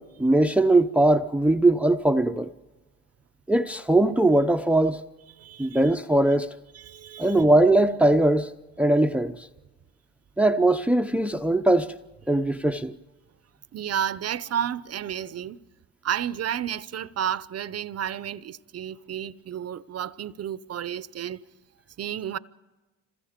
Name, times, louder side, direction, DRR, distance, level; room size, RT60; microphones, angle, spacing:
voice 1, 0.0-2.5 3.5-5.0 5.6-6.5 7.2-8.5 8.8-9.5 10.4-11.9 12.3-12.9, right 1 dB, 5° right, 0.7 m, -20 dB
voice 2, 5.4-5.8 6.7-7.4 13.7-15.6 16.0-21.4 22.0-22.4, right 10 dB, 45° right, 0.8 m, -31 dB
26.5 x 20.5 x 5.1 m
supercardioid pair, 75°, 33 cm